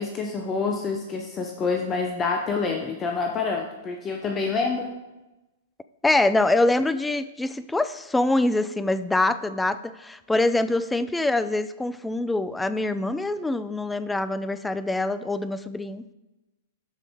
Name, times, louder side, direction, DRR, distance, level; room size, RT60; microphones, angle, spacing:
voice 1, 0.0-5.0, left 4 dB, 25° left, 2 dB, 1.0 m, -27 dB
voice 2, 6.0-16.0, left 2 dB, 5° left, 13 dB, 0.4 m, -24 dB
12.0 x 5.4 x 4.7 m, 1.0 s
figure-of-eight pair, 105°, 0 cm